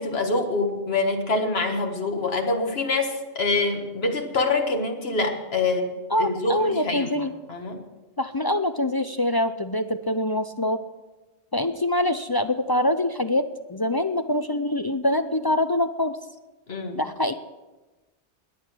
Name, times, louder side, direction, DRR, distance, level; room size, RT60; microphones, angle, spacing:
voice 1, 0.0-5.9 6.2-7.1 7.5-7.8 16.7-17.0, left 3 dB, 65° left, 3 dB, 1.9 m, -25 dB
voice 2, 6.1-7.3 8.2-10.8 11.5-13.4 13.7-16.2 16.9-17.3, left 1 dB, 35° left, 9 dB, 0.4 m, -24 dB
21.0 x 8.5 x 6.2 m, 1.1 s
omnidirectional pair, 1.2 m